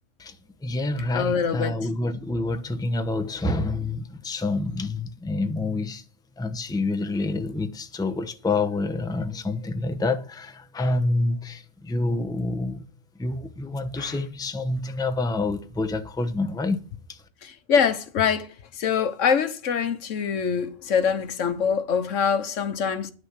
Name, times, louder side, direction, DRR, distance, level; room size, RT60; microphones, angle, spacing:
voice 1, 0.6-6.0 6.4-12.8 13.2-16.8 17.1-17.2, left 2 dB, 5° left, 0.7 m, -27 dB
voice 2, 1.1-1.7 14.0-14.2 17.4-23.1, left 6 dB, 80° left, 1.3 m, -24 dB
10.0 x 6.6 x 8.0 m
omnidirectional pair, 1.3 m